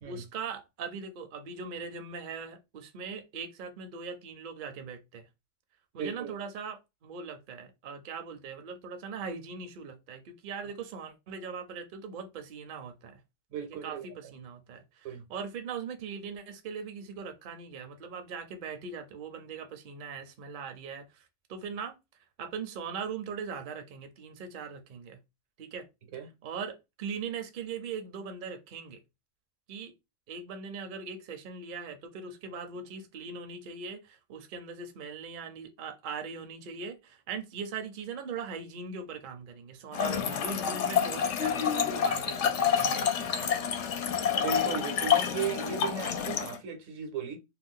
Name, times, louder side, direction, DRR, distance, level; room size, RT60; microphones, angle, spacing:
voice 1, 0.0-5.2 5.9-13.2 13.8-21.1 21.5-21.9 22.4-25.2 25.6-25.9 26.4-29.0 29.7-29.9 30.3-43.5, right 5 dB, 55° right, 0.6 m, -40 dB
voice 2, 6.0-6.3 13.5-14.3 15.0-15.2 26.1-26.3 44.4-47.4, right 6 dB, 80° right, 1.1 m, -36 dB
Trickle dribble / Fill (with liquid), 39.9-46.6, left 7 dB, 70° left, 0.9 m, -28 dB
2.5 x 2.2 x 3.5 m
omnidirectional pair, 1.3 m